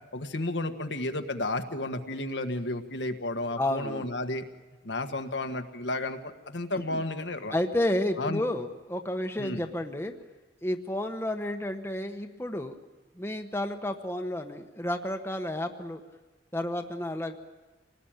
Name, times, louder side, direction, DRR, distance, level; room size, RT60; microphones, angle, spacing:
voice 1, 0.1-4.4 4.8-6.2 6.5-7.5 8.2-8.4 9.4-9.6, left 2 dB, 80° left, 6 dB, 1.6 m, -32 dB
voice 2, 3.6-4.1 6.9-7.0 7.5-10.1 10.6-12.8 13.2-16.0 16.5-17.4, left 1 dB, 15° left, 5 dB, 1.2 m, -31 dB
26.5 x 19.0 x 9.0 m, 1.2 s
head